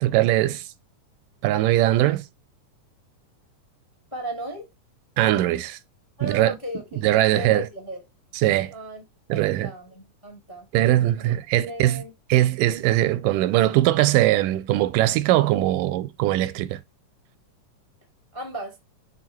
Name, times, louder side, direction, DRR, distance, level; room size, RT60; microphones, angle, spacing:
voice 1, 0.0-0.6 1.4-2.2 5.2-5.8 6.2-6.6 7.0-7.7 8.4-8.7 9.3-9.7 10.7-12.0 12.3-16.8, right 15 dB, 90° right, 2.2 m, -21 dB
voice 2, 4.1-4.6 6.2-7.0 7.3-8.0 8.7-9.0 9.3-10.7 11.2-11.3 11.7-12.1 18.3-18.8, right 1 dB, 15° left, 0.9 m, -35 dB
6.4 x 4.5 x 4.4 m
omnidirectional pair, 3.7 m